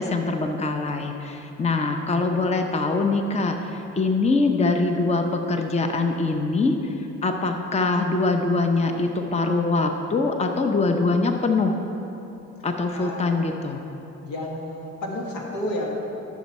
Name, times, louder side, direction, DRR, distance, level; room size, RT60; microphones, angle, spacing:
voice 1, 0.0-11.8 12.6-13.8, left 3 dB, 20° left, 5 dB, 0.7 m, -23 dB
voice 2, 12.9-13.4 14.2-15.9, left 1 dB, 85° left, -1 dB, 1.7 m, -31 dB
13.0 x 6.2 x 4.3 m, 3.0 s
cardioid pair, 90°, 30 cm